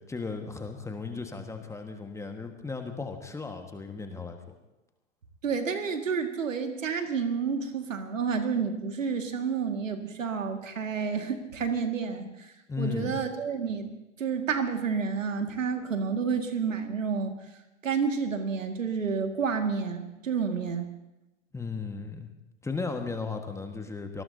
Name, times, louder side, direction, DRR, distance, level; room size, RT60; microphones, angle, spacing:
voice 1, 0.1-4.5 12.7-13.2 21.5-22.3 22.6-24.2, left 4 dB, 5° left, 5 dB, 1.5 m, -35 dB
voice 2, 5.4-12.5 12.8-13.9 14.2-17.4 17.8-20.9, right 5 dB, 75° right, 6 dB, 2.1 m, -30 dB
25.5 x 19.0 x 2.8 m, 0.98 s
figure-of-eight pair, 105°, 39 cm